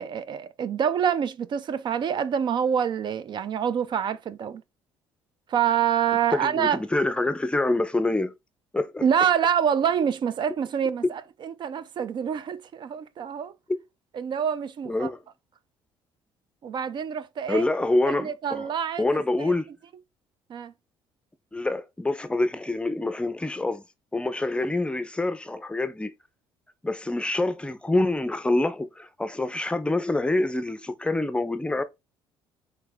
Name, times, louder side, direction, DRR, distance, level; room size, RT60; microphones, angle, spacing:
voice 1, 0.0-4.6 5.5-6.8 9.0-13.5 14.1-15.1 16.6-17.7 18.1-19.5 20.5-20.7, right 8 dB, 50° right, 0.5 m, -26 dB
voice 2, 6.3-8.3 8.7-9.0 13.7-13.8 14.9-15.2 17.5-18.7 19.0-19.7 21.5-23.8 24.1-26.1 26.8-31.8, left 2 dB, 10° left, 0.5 m, -26 dB
3.4 x 3.3 x 3.5 m
supercardioid pair, 80°, 10 cm